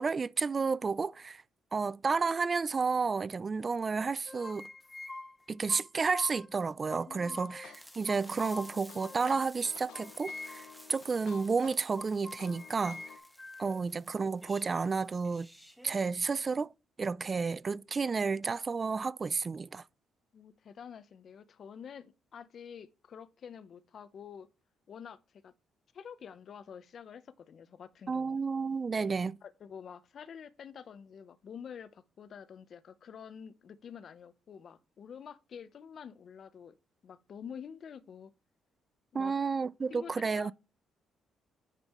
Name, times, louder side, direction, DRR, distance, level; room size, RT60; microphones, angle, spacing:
voice 1, 0.0-1.4 1.7-4.7 5.5-13.0 13.6-15.5 15.8-16.7 17.0-19.8 28.1-29.4 39.1-40.5, right 4 dB, 35° right, 0.3 m, -31 dB
sound 1, 4.0-6.5 6.9-7.8 8.1-9.4 9.9-10.8 11.3-11.5 12.0-13.8, left 2 dB, 15° left, 0.5 m, -45 dB
voice 2, 7.1-7.4 20.3-24.5 24.9-25.2 25.4-25.5 25.9-28.4 29.4-36.8 37.0-38.3 39.1-39.3 39.9-40.5, left 7 dB, 55° left, 0.7 m, -48 dB
sound 2, 7.3-13.2, left 11 dB, 90° left, 0.8 m, -53 dB
sound 3, 7.7-16.2, equal, ahead, 1.4 m, -55 dB
9.8 x 5.3 x 3.1 m
cardioid pair, 90°, 0 cm